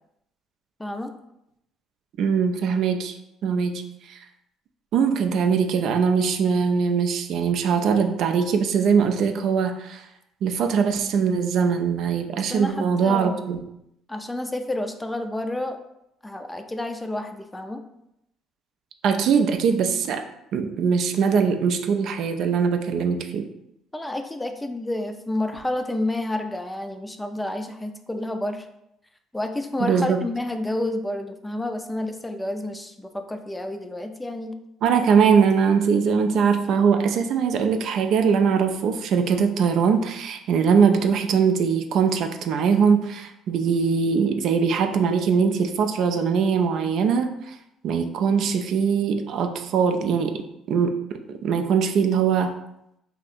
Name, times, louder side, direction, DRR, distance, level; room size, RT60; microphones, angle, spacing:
voice 1, 0.8-1.1 12.5-13.4 14.1-15.8 16.2-17.8 23.9-28.7 29.3-34.5, left 1 dB, 10° left, 6 dB, 0.4 m, -30 dB
voice 2, 2.2-3.2 3.4-3.8 4.1-4.2 4.9-10.0 10.4-13.6 19.0-20.2 20.5-23.5 29.8-30.2 34.8-47.5 47.8-52.5, right 6 dB, 65° right, 6 dB, 0.3 m, -21 dB
2.8 x 2.4 x 4.1 m, 0.81 s
supercardioid pair, 75°, 0 cm